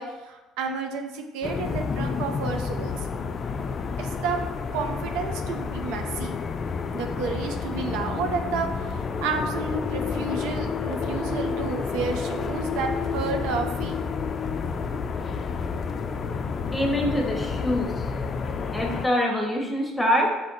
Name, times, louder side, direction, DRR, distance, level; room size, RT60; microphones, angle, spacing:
voice 1, 0.0-3.0 4.0-4.4 4.7-6.4 6.9-14.0, right 5 dB, 75° right, 5 dB, 0.4 m, -31 dB
sound 1, 1.4-19.1, left 5 dB, 45° left, 0.3 m, -30 dB
voice 2, 16.7-18.3 18.7-20.3, left 1 dB, 10° left, 0 dB, 1.1 m, -25 dB
5.3 x 2.5 x 4.0 m, 1.1 s
hypercardioid pair, 65°, 0 cm